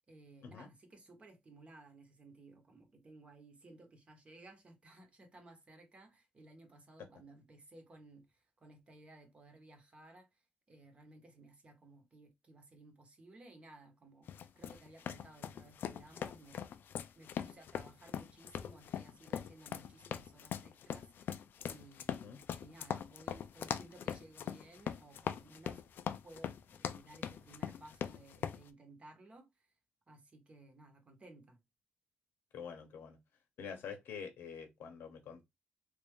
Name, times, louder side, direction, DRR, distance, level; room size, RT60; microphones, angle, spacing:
voice 1, 0.1-25.8 26.2-29.7 30.1-31.6, right 2 dB, 30° right, 1.1 m, -58 dB
sound 1, 14.3-28.6, left 8 dB, 65° left, 0.4 m, -41 dB
voice 2, 32.5-33.2 33.6-35.4, left 6 dB, 85° left, 0.9 m, -46 dB
3.3 x 2.6 x 3.5 m
cardioid pair, 125°, 4 cm